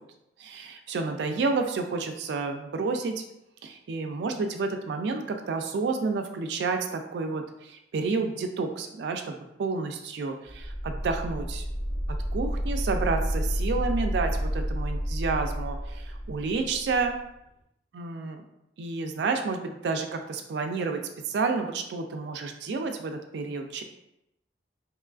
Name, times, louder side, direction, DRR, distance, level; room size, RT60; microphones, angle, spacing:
voice 1, 0.4-3.2 3.6-11.6 12.3-17.2 17.9-18.4 18.8-23.8, right 4 dB, 70° right, 5 dB, 0.3 m, -30 dB
sound 1, 10.5-17.1, equal, 85° left, 1.2 m, -30 dB
2.9 x 2.4 x 2.3 m, 0.86 s
head